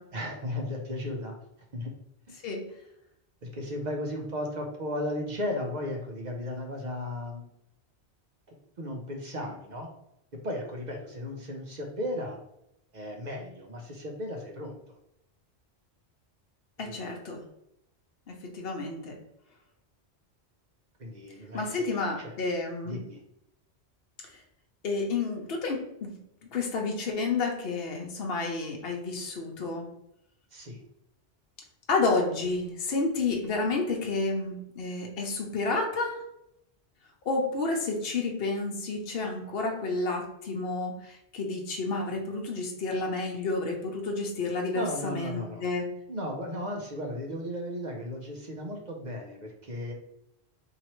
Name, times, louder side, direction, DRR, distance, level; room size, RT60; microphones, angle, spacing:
voice 1, 0.1-1.4 1.7-1.9 2.3-2.4 3.4-7.4 8.8-9.9 10.4-12.4 12.9-15.0 16.8-17.1 21.0-22.3 22.8-23.2 30.5-30.8 44.7-45.7 46.1-49.9, left 1 dB, 45° right, 1 dB, 0.7 m, -35 dB
voice 2, 16.8-17.4 18.5-19.1 21.5-22.9 24.8-26.1 26.5-29.9 31.9-36.2 37.3-45.8, left 3 dB, 60° left, 1 dB, 1.0 m, -30 dB
4.3 x 2.8 x 3.0 m, 0.80 s
omnidirectional pair, 1.1 m